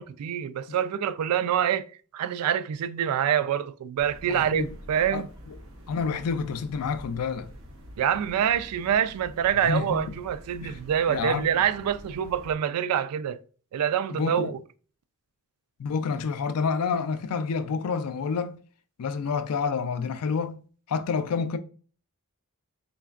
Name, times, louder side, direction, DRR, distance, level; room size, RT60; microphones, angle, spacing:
voice 1, 0.0-1.9 2.1-5.3 8.0-13.4 13.7-14.6, right 9 dB, 90° right, 0.3 m, -26 dB
sound 1, 4.0-12.5, equal, 60° right, 0.7 m, -46 dB
voice 2, 4.3-4.7 5.1-5.2 5.9-7.5 9.6-10.2 10.6-10.8 11.1-11.5 14.1-14.5 15.8-18.6 19.0-20.6 20.9-21.6, left 5 dB, 85° left, 0.4 m, -28 dB
3.8 x 3.2 x 2.4 m
head